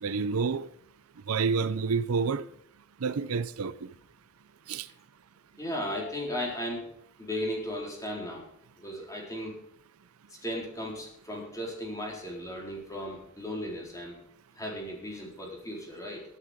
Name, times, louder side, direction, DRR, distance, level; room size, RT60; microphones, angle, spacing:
voice 1, 0.0-0.7 1.3-2.4 3.0-3.9 4.7-4.9, right 5 dB, 80° right, 0.6 m, -28 dB
voice 2, 5.6-6.9 7.2-8.5 8.8-9.6 10.3-14.2 14.5-16.2, left 1 dB, 15° left, 4.0 m, -36 dB
13.0 x 11.5 x 5.1 m
head